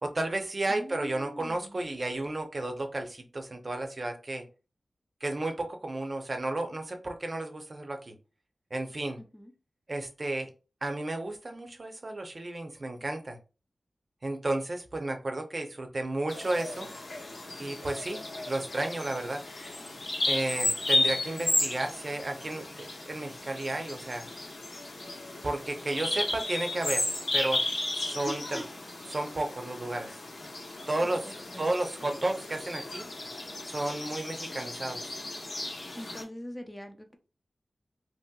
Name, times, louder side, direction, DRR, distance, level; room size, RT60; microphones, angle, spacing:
voice 1, 0.0-4.4 5.2-8.1 8.7-9.2 9.9-10.5 10.8-13.4 14.2-16.9 17.6-18.2 18.5-19.4 20.3-24.3 25.4-27.6 27.9-28.6 29.1-30.1 30.9-33.1 33.7-35.0, right 2 dB, 45° right, 5 dB, 0.5 m, -33 dB
voice 2, 0.7-1.8 9.2-9.5 28.2-28.6 31.0-31.8 35.9-37.2, equal, 10° left, 5 dB, 0.4 m, -42 dB
Bird vocalization bird call bird song, 16.3-36.2, left 1 dB, 90° left, 0.9 m, -34 dB
2.8 x 2.7 x 2.3 m, 0.32 s
wide cardioid pair, 85°, 0 cm